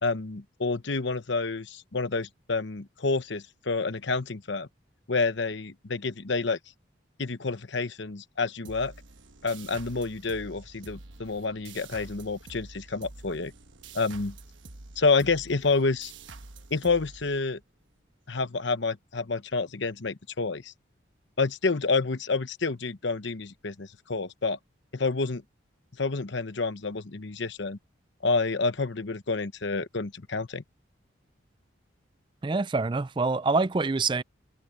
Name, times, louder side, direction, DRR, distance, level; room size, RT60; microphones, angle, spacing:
voice 1, 0.0-4.7 5.1-6.6 7.2-8.9 9.4-13.5 13.9-14.3 15.0-16.1 16.7-17.6 18.3-20.7 21.4-24.6 24.9-25.4 26.0-27.8 28.2-30.6, left 4 dB, 65° left, 1.0 m, -28 dB
sound 1, 8.6-17.9, right 3 dB, 75° right, 1.2 m, -47 dB
voice 2, 32.4-34.2, right 3 dB, 25° right, 0.4 m, -26 dB
head